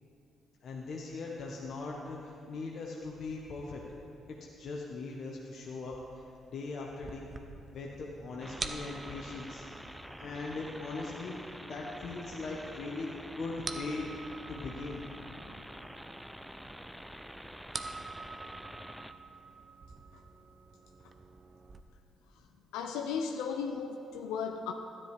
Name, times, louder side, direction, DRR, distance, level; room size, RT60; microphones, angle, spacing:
voice 1, 0.6-3.8 4.3-7.3 7.7-9.7 10.2-11.4 11.6-14.1 14.5-15.5, left 3 dB, 60° left, -2 dB, 1.0 m, -40 dB
sound 1, 7.0-21.8, right 3 dB, 40° right, 0.7 m, -47 dB
sound 2, 8.4-19.1, equal, ahead, 0.5 m, -47 dB
voice 2, 22.7-24.7, left 6 dB, 75° left, 4 dB, 0.4 m, -35 dB
13.0 x 10.0 x 3.4 m, 2.6 s
hypercardioid pair, 45°, 0 cm